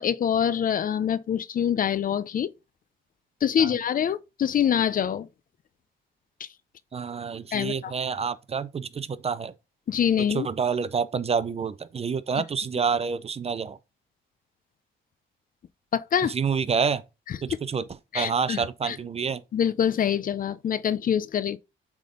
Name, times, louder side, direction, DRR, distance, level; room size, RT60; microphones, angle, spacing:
voice 1, 0.0-2.5 3.4-5.3 7.5-7.9 9.9-10.5 15.9-16.3 17.3-17.4 18.1-19.0 19.5-21.6, left 8 dB, 45° left, 0.5 m, -25 dB
voice 2, 6.9-9.5 10.2-13.8 16.2-17.0 17.4-17.8 18.1-19.4, right 6 dB, 30° right, 0.5 m, -28 dB
7.5 x 3.6 x 3.7 m
cardioid pair, 90°, 20 cm